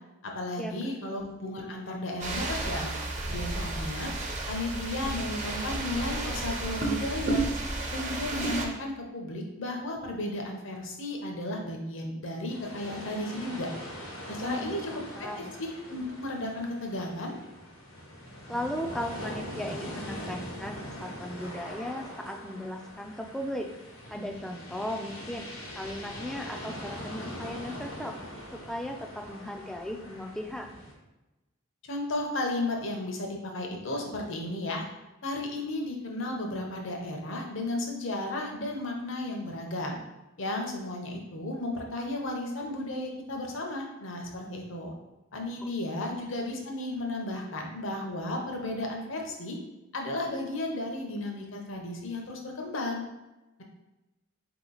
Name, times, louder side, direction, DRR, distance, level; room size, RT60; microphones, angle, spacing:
voice 1, 0.2-3.0 3.3-4.1 4.5-7.5 7.9-13.7 14.3-15.3 15.6-17.3 31.8-34.8 35.2-40.0 40.4-44.9 45.3-49.6 49.9-53.1, left 1 dB, 65° left, 1 dB, 0.8 m, -34 dB
sound 1, 2.2-8.7, right 2 dB, 35° right, 0.6 m, -32 dB
sound 2, 12.5-30.9, equal, 85° left, 1.1 m, -42 dB
voice 2, 14.4-15.5 18.5-23.7 24.1-25.5 25.8-28.1 28.7-30.7 45.9-46.1, equal, ahead, 3 dB, 0.3 m, -37 dB
4.1 x 2.9 x 3.9 m, 1.0 s
head